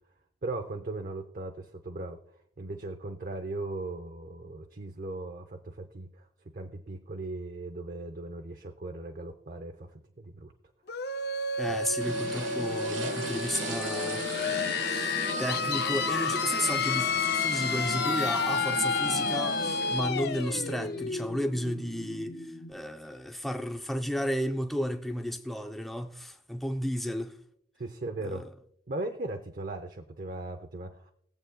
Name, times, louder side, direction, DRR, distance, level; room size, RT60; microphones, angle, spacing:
voice 1, 0.4-2.2 2.6-6.3 6.5-10.5 11.7-12.1 27.8-28.5 28.9-31.1, right 2 dB, 45° right, 0.6 m, -38 dB
sound 1, 10.9-22.4, left 4 dB, 55° left, 0.5 m, -31 dB
voice 2, 11.6-14.3 15.4-27.4 28.2-28.5, equal, ahead, 0.4 m, -33 dB
sound 2, 12.0-22.7, left 1 dB, 40° left, 1.7 m, -43 dB
sound 3, 12.0-20.0, right 3 dB, 80° right, 1.4 m, -39 dB
21.0 x 7.8 x 2.2 m
head